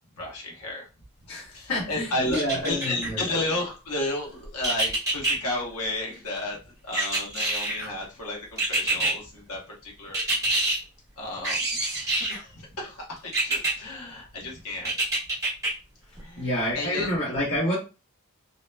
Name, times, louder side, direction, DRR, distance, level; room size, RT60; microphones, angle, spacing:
voice 1, 0.2-0.8 1.5-10.2 11.2-14.9 16.2-17.1, left 2 dB, 80° left, -1 dB, 1.0 m, -33 dB
voice 2, 1.3-3.2 16.4-17.8, left 1 dB, 65° left, -10 dB, 1.2 m, -28 dB
sound 1, 2.3-3.1 4.6-5.4 6.9-7.9 8.6-9.1 10.1-10.8 11.4-12.4 13.3-13.7 14.9-15.7 16.2-16.3, right 2 dB, 15° right, 1.1 m, -26 dB
2.8 x 2.1 x 2.2 m, 0.31 s
head